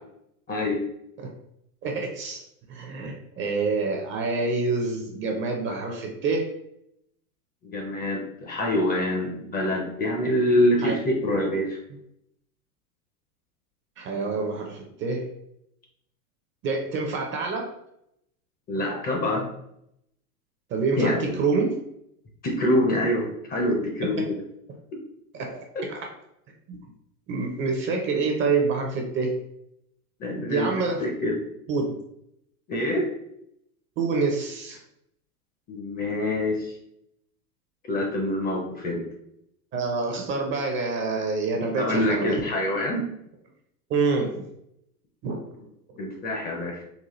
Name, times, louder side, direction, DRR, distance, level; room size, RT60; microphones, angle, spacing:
voice 1, 0.5-0.8 7.6-11.8 18.7-19.5 21.0-21.4 22.4-24.3 25.7-25.9 30.2-30.7 31.0-31.4 32.7-33.1 35.7-36.7 37.9-39.0 41.8-43.0 46.0-46.8, left 1 dB, 20° left, 1 dB, 0.5 m, -25 dB
voice 2, 1.8-2.4 2.7-6.5 10.8-10.9 14.0-15.2 16.6-17.7 20.7-21.8 24.2-24.3 25.3-25.6 25.9-26.0 26.7-26.8 27.3-29.3 30.5-31.0 31.7-31.9 34.0-34.8 39.7-42.4 43.9-44.4 45.2-45.4, right 4 dB, 25° right, 1 dB, 0.5 m, -27 dB
4.1 x 2.3 x 2.9 m, 0.75 s
hypercardioid pair, 120°, 46 cm